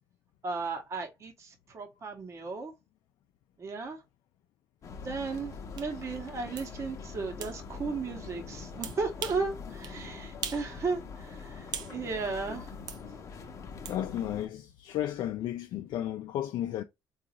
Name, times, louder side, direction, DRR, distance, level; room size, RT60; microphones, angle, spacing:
voice 1, 0.4-2.7 3.6-4.0 5.0-12.7, right 4 dB, 40° right, 0.9 m, -35 dB
sound 1, 4.8-14.5, left 5 dB, 45° left, 0.7 m, -43 dB
sound 2, 5.8-5.9 6.6-6.7 7.4-7.6 8.8-9.5 9.8-10.0 10.4-10.7 11.0-12.0 12.9-13.0 13.8-14.0, right 8 dB, 65° right, 0.6 m, -39 dB
voice 2, 13.9-16.8, left 12 dB, 70° left, 0.4 m, -33 dB
3.8 x 2.4 x 2.9 m
cardioid pair, 110°, 8 cm